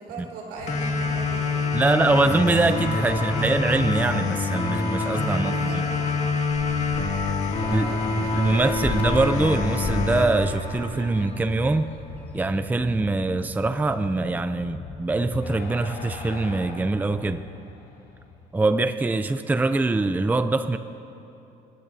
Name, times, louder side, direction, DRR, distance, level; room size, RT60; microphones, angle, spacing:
voice 1, 0.0-2.2 2.9-3.6 5.3-6.2 6.8-7.1 7.5-8.9, right 3 dB, 80° right, -2 dB, 4.7 m, -40 dB
sound 1, 0.6-18.9, left 3 dB, 80° left, 3.6 m, -40 dB
sound 2, 0.7-11.6, left 4 dB, 45° left, 2.0 m, -26 dB
voice 2, 1.7-5.8 7.7-11.9 12.3-17.4 18.5-20.8, right 2 dB, 10° right, 10 dB, 0.5 m, -23 dB
sound 3, 5.9-12.7, left 2 dB, 10° left, 1.6 m, -36 dB
30.0 x 16.5 x 2.8 m, 2.8 s
cardioid pair, 110°, 17 cm